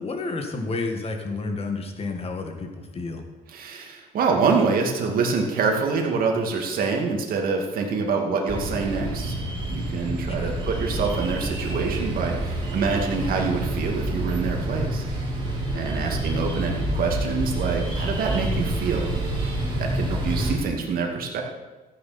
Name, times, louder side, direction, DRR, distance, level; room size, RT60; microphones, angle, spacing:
voice 1, 0.0-3.2 10.4-10.5 16.0-16.2, left 3 dB, 35° left, 4 dB, 1.9 m, -30 dB
voice 2, 3.5-9.4 9.7-15.0 15.7-19.1 19.8-21.4, right 4 dB, 60° right, 1 dB, 2.4 m, -26 dB
sound 1, 8.5-20.5, right 1 dB, 25° right, 3.9 m, -28 dB
14.5 x 9.4 x 4.4 m, 1.2 s
cardioid pair, 110°, 17 cm